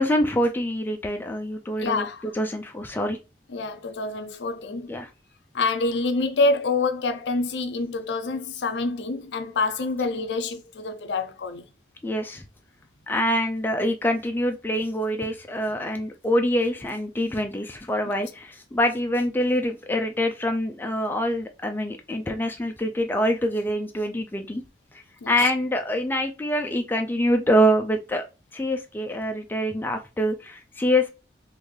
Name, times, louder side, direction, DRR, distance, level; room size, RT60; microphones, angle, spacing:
voice 1, 0.0-3.2 4.9-5.1 12.0-12.4 13.1-24.6 24.9-28.2 28.5-31.1, equal, 10° left, 0.4 m, -25 dB
voice 2, 1.8-2.2 3.5-4.9 5.5-11.7 25.2-25.5, left 3 dB, 75° left, 0.5 m, -26 dB
3.7 x 2.6 x 3.2 m
head